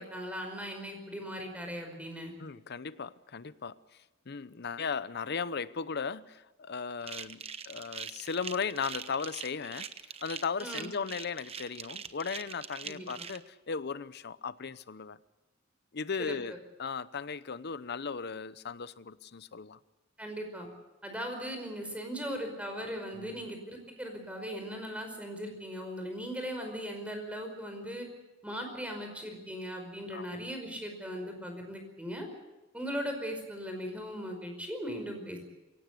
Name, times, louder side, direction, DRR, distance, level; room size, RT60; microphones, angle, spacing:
voice 1, 0.0-2.3 10.6-10.9 12.8-13.3 16.2-16.6 20.2-20.7 21.0-28.1 28.4-32.3 32.7-35.4, equal, 5° right, 4 dB, 5.1 m, -39 dB
voice 2, 2.4-3.8 4.3-9.9 10.2-15.2 15.9-16.5 16.8-19.8 23.1-23.5 30.1-30.3, left 5 dB, 55° left, 16 dB, 0.8 m, -37 dB
sound 1, 7.0-13.4, right 6 dB, 30° right, 1.0 m, -42 dB
23.5 x 17.5 x 8.3 m, 1.0 s
head